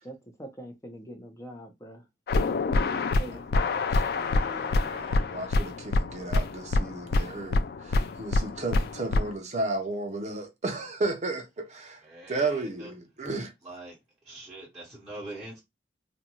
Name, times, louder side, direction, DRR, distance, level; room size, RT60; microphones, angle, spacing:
voice 1, 0.0-2.1 3.1-3.4, right 1 dB, 15° left, 0.6 m, -43 dB
sound 1, 2.3-9.3, left 2 dB, 60° left, 0.3 m, -26 dB
voice 2, 3.9-12.0 12.3-13.5, right 2 dB, 40° right, 0.6 m, -33 dB
voice 3, 12.0-12.9 13.6-13.9 14.2-15.6, right 2 dB, 15° right, 1.3 m, -43 dB
2.6 x 2.2 x 2.9 m
head